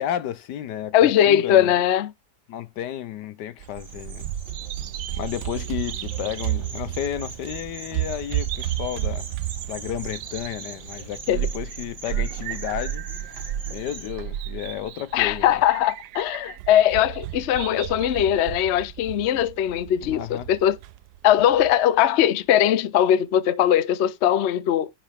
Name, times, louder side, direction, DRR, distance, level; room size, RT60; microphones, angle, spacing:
voice 1, 0.0-1.7 2.5-4.3 5.2-9.3 9.6-15.5 20.0-20.5, left 11 dB, 80° left, 1.4 m, -32 dB
voice 2, 0.9-2.1 11.3-11.5 15.1-20.8 21.2-24.9, left 11 dB, 60° left, 0.7 m, -20 dB
Bird vocalization bird call bird song, 3.6-21.7, right 13 dB, 75° right, 1.1 m, -32 dB
sound 1, 3.8-14.1, right 4 dB, 50° right, 2.2 m, -42 dB
10.0 x 5.5 x 3.4 m
omnidirectional pair, 1.9 m